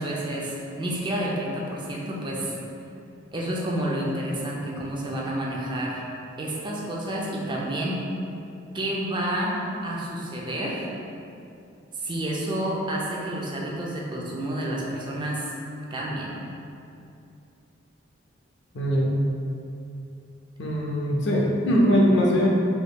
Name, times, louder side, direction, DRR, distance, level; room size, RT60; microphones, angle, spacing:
voice 1, 0.0-2.6 3.3-6.0 6.4-8.1 8.7-10.9 11.9-15.5 15.9-16.3, right 1 dB, 25° right, -3 dB, 0.4 m, -29 dB
voice 2, 18.7-19.2 20.6-22.5, equal, 65° left, -3 dB, 0.5 m, -21 dB
3.5 x 3.0 x 2.3 m, 2.7 s
head